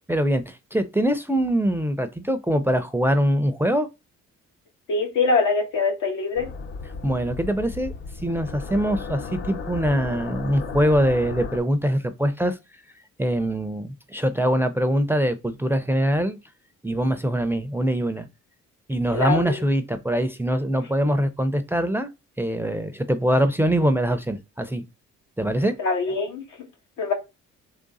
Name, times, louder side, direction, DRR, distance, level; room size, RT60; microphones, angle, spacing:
voice 1, 0.1-3.9 7.0-7.9 8.2-12.6 13.2-16.4 16.8-18.3 18.9-22.1 22.4-24.8 25.4-25.8, equal, 10° right, 0.5 m, -23 dB
voice 2, 4.9-6.5 19.1-19.6 25.8-26.4 27.0-27.1, left 3 dB, 85° left, 1.6 m, -23 dB
sound 1, 6.4-11.6, left 4 dB, 40° left, 0.6 m, -35 dB
3.7 x 3.3 x 4.0 m
cardioid pair, 90°, 30 cm